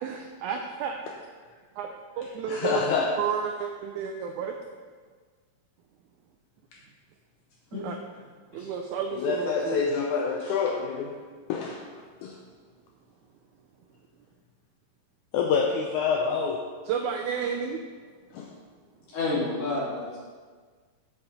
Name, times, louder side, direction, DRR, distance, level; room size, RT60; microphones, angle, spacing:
voice 1, 0.0-1.0 1.8-1.9 2.2-2.8 3.2-4.5 7.8-8.0 8.5-9.9 16.9-17.8, right 7 dB, 90° right, 4 dB, 1.7 m, -31 dB
voice 2, 2.5-3.2 9.1-11.2 11.5-11.9 12.2-12.4 15.3-16.7 18.3-18.5, left 5 dB, 80° left, 1 dB, 1.8 m, -27 dB
voice 3, 19.1-20.2, left 2 dB, 60° left, -8 dB, 3.9 m, -30 dB
7.9 x 7.3 x 4.2 m, 1.6 s
omnidirectional pair, 3.9 m